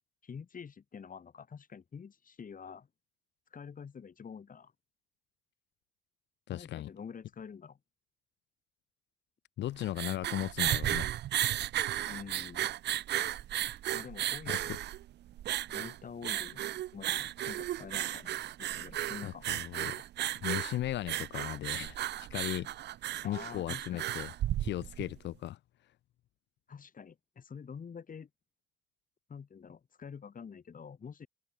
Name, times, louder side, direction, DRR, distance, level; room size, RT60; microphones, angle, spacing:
voice 1, 0.2-2.9 3.5-4.7 6.5-7.8 12.1-12.7 13.9-14.7 15.7-16.6 16.9-19.5 23.2-24.1 26.7-28.3 29.3-31.3, left 6 dB, 50° left, 3.4 m, -47 dB
voice 2, 6.5-6.9 9.6-11.1 14.5-14.8 19.2-20.0 20.4-22.7 23.2-24.3 24.6-25.6, left 13 dB, 75° left, 1.2 m, -37 dB
sound 1, 9.7-25.1, right 13 dB, 70° right, 0.7 m, -34 dB
supercardioid pair, 55°, 19 cm